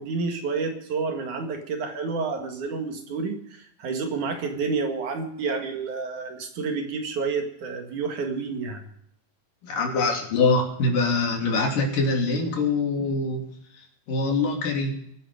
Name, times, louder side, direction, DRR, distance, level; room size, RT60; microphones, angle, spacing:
voice 1, 0.0-8.9, right 4 dB, 70° right, 4 dB, 3.4 m, -29 dB
voice 2, 9.6-13.5 13.8-15.0, left 3 dB, 90° left, 1 dB, 4.5 m, -24 dB
22.5 x 9.2 x 5.0 m, 0.71 s
omnidirectional pair, 3.7 m